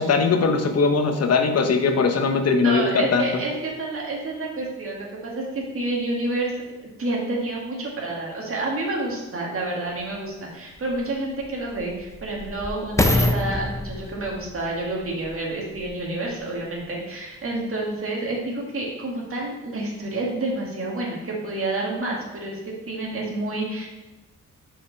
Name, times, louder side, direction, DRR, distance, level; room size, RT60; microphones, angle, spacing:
voice 1, 0.0-3.4, left 4 dB, 55° left, 5 dB, 0.9 m, -20 dB
voice 2, 2.6-6.5 7.0-23.9, right 2 dB, 45° right, -2 dB, 1.9 m, -29 dB
sound 1, 10.0-10.1 10.8-16.1 16.7-16.8, left 1 dB, 10° left, 0.5 m, -27 dB
5.7 x 5.0 x 5.2 m, 1.0 s
wide cardioid pair, 135°, 31 cm